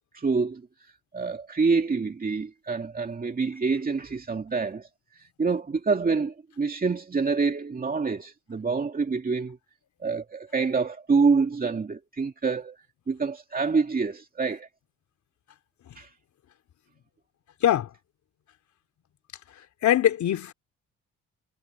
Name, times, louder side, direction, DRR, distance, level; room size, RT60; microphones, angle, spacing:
voice 1, 0.1-0.6 1.1-4.9 5.2-9.6 10.0-12.8 13.1-14.7 15.9-16.1, right 4 dB, 30° right, 2.3 m, -26 dB
voice 2, 19.8-20.5, left 11 dB, 70° left, 3.5 m, -22 dB
cardioid pair, 90°, 30 cm